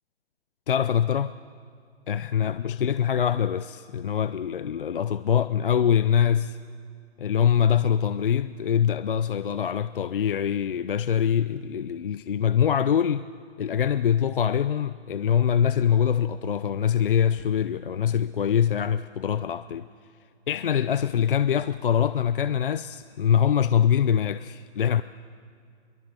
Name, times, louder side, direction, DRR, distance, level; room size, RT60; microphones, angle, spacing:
voice 1, 0.7-1.3 2.1-6.6 7.2-13.3 13.6-19.9 20.5-25.0, left 8 dB, 55° left, 0.6 m, -24 dB
22.5 x 22.0 x 8.1 m
hypercardioid pair, 175°, 33 cm